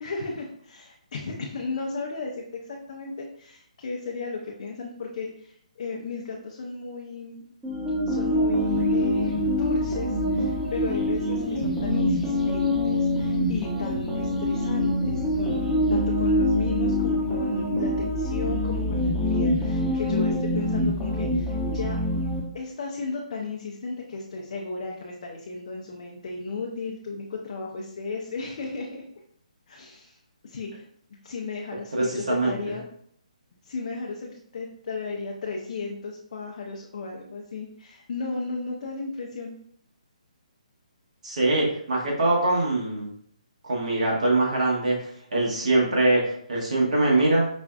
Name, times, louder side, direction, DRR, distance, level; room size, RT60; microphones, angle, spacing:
voice 1, 0.0-7.4 8.1-22.0 22.5-29.0 29.7-30.2 30.4-30.8 31.2-32.8 33.6-39.5, left 4 dB, 55° left, -1 dB, 0.6 m, -35 dB
sound 1, 7.6-22.4, left 1 dB, 5° right, 0.8 m, -25 dB
voice 2, 31.9-32.5 41.2-43.1 43.6-47.5, right 2 dB, 65° right, -3 dB, 1.3 m, -23 dB
5.0 x 2.4 x 2.3 m, 0.64 s
figure-of-eight pair, 145°, 4 cm